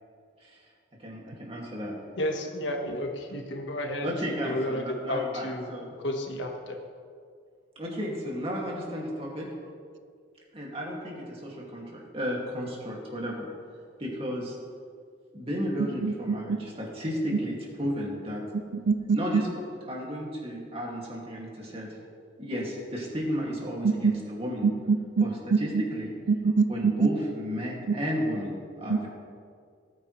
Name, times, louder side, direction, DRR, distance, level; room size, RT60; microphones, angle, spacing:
voice 1, 1.0-1.9 4.0-5.9 7.8-9.5 10.5-13.5 14.0-14.6 15.3-18.4 19.1-21.9 22.4-24.7 25.2-26.1 26.7-29.1, equal, 30° right, -3 dB, 2.4 m, -33 dB
voice 2, 2.2-4.1 4.4-5.7 6.0-6.8, left 1 dB, 70° left, 2 dB, 1.5 m, -31 dB
voice 3, 18.7-19.4 23.8-24.1 24.6-25.3 25.5-25.8 26.3-27.1 28.9-29.1, right 4 dB, 70° right, 10 dB, 0.5 m, -24 dB
18.5 x 9.1 x 3.3 m, 2.2 s
head